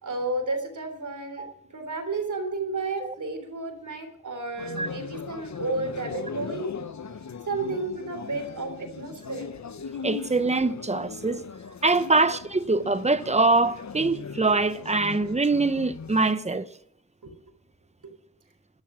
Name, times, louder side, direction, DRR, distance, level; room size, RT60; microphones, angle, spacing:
voice 1, 0.0-1.5 1.7-6.7 7.5-9.5 12.2-12.3 17.2-17.3, right 3 dB, 60° right, 3.6 m, -32 dB
sound 1, 4.6-16.3, left 6 dB, 55° left, 0.9 m, -39 dB
voice 2, 10.0-11.4 11.8-16.7, right 3 dB, 20° right, 0.8 m, -23 dB
13.5 x 12.0 x 6.2 m
wide cardioid pair, 110°, 34 cm